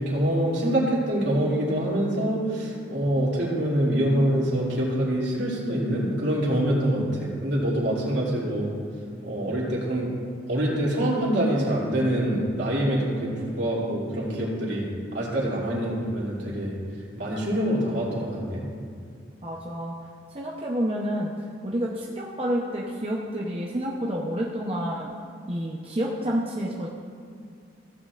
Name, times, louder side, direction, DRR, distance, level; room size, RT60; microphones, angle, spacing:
voice 1, 0.0-8.7 9.2-10.1 10.5-16.8 17.2-18.6, right 1 dB, 70° right, -6 dB, 2.7 m, -25 dB
voice 2, 19.4-19.9 20.3-21.3 21.6-25.1 25.5-26.9, equal, 30° right, -3 dB, 0.7 m, -29 dB
15.5 x 8.8 x 2.5 m, 2.3 s
head